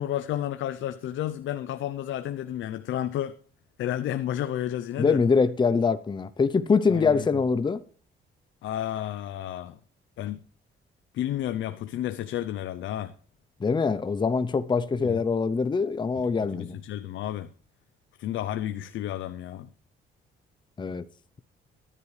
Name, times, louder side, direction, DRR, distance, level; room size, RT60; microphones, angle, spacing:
voice 1, 0.0-3.4 3.8-5.2 6.9-7.3 8.6-9.8 10.2-10.4 11.1-13.1 15.0-15.2 16.2-17.5 18.2-19.7, left 11 dB, 75° left, 0.6 m, -31 dB
voice 2, 5.0-7.8 13.6-16.8 20.8-21.0, left 5 dB, 25° left, 0.6 m, -24 dB
13.5 x 10.0 x 3.2 m
cardioid pair, 90°, 20 cm